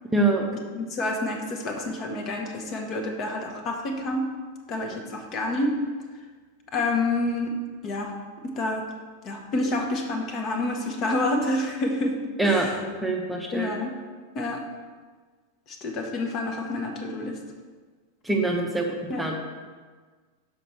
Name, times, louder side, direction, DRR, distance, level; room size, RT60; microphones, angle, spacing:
voice 1, 0.1-0.4 12.4-12.7 13.0-13.7 18.2-19.4, right 2 dB, 5° right, 0 dB, 0.7 m, -24 dB
voice 2, 0.7-4.3 4.7-5.8 6.7-7.6 7.8-8.1 8.4-8.9 9.2-12.7 13.5-13.9 14.3-14.6 15.7-17.4 19.1-19.3, left 2 dB, 35° left, 3 dB, 0.9 m, -28 dB
6.6 x 5.1 x 4.3 m, 1.5 s
figure-of-eight pair, 90°, 0 cm